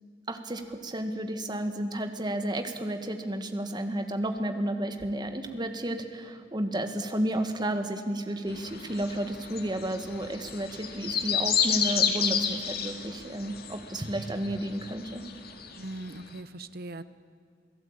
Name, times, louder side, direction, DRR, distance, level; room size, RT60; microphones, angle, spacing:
voice 1, 0.3-15.2, right 1 dB, 25° right, 6 dB, 1.7 m, -32 dB
sound 1, 8.5-16.0 16.4-16.5, left 7 dB, 55° left, 2.1 m, -31 dB
voice 2, 15.8-17.0, right 2 dB, 55° right, 13 dB, 0.9 m, -40 dB
28.0 x 17.5 x 8.9 m, 2.1 s
head